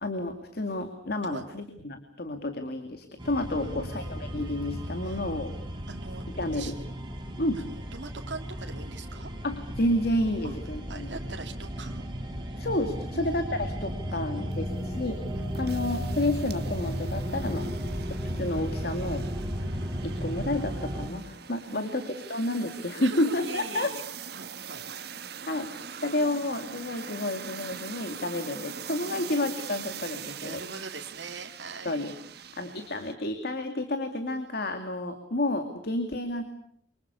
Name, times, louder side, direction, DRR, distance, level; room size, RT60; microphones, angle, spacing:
voice 1, 0.0-5.5 6.4-6.7 7.4-7.6 9.4-11.1 12.6-15.2 15.5-17.6 18.2-19.2 20.0-23.9 25.5-25.7 26.0-30.6 31.8-32.1 32.6-36.4, left 1 dB, 60° left, 7 dB, 2.4 m, -30 dB
sound 1, 3.2-21.1, equal, 25° right, 5.1 m, -35 dB
voice 2, 3.6-4.1 5.0-5.2 5.9-6.2 6.5-6.7 7.5-9.3 10.4-10.5 10.9-12.1 13.1-13.3 14.1-14.8 15.3-15.6 17.6-17.8 19.3-19.5 21.7-22.3 23.0-24.0 24.3-25.1 25.4-25.5 29.1-29.3 30.4-32.0, right 4 dB, 80° right, 3 dB, 2.4 m, -43 dB
sound 2, 14.5-33.1, right 7 dB, 65° right, 1.4 m, -43 dB
29.0 x 25.0 x 6.9 m, 0.68 s
head